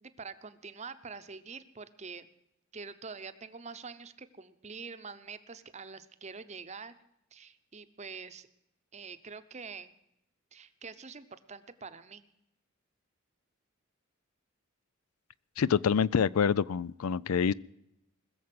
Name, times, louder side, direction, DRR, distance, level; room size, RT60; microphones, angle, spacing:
voice 1, 0.0-2.3 2.7-7.0 7.3-8.5 8.9-9.9 10.5-12.2, right 5 dB, 30° right, 12 dB, 0.8 m, -45 dB
voice 2, 15.6-17.5, left 7 dB, 90° left, 21 dB, 0.4 m, -26 dB
20.5 x 7.1 x 7.7 m, 0.83 s
head